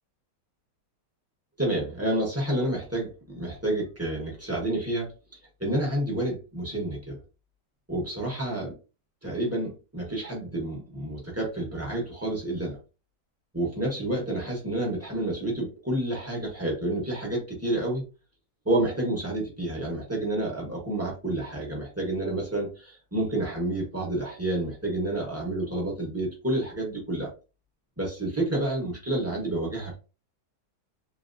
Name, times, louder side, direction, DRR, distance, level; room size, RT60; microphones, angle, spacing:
voice 1, 1.6-5.1 5.6-7.2 7.9-8.7 9.2-12.8 13.5-18.0 18.6-27.3 28.0-30.0, right 1 dB, 10° right, -2 dB, 1.0 m, -29 dB
3.1 x 2.8 x 2.5 m, 0.32 s
omnidirectional pair, 1.9 m